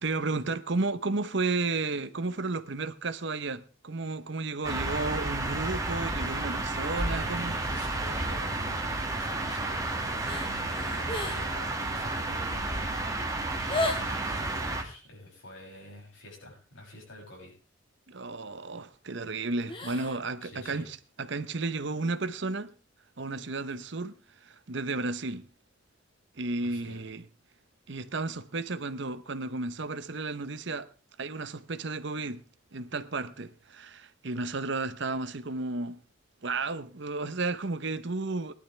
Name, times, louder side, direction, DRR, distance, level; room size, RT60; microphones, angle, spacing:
voice 1, 0.0-7.6 18.1-22.7 23.2-24.1 24.4-25.5 26.4-27.2 27.9-30.9 31.2-32.4 32.7-36.0 36.4-38.5, right 3 dB, 65° right, 0.9 m, -33 dB
sound 1, 4.6-14.8, right 2 dB, 15° right, 2.0 m, -31 dB
voice 2, 7.0-13.3 13.6-17.5 20.4-20.9 26.6-27.0, left 1 dB, 80° left, 7.2 m, -47 dB
sound 2, 10.3-11.6 11.8-12.2 12.8-12.9 13.1-14.2 19.6-20.2 20.5-20.6, left 2 dB, 25° left, 1.8 m, -35 dB
19.5 x 11.5 x 3.3 m
head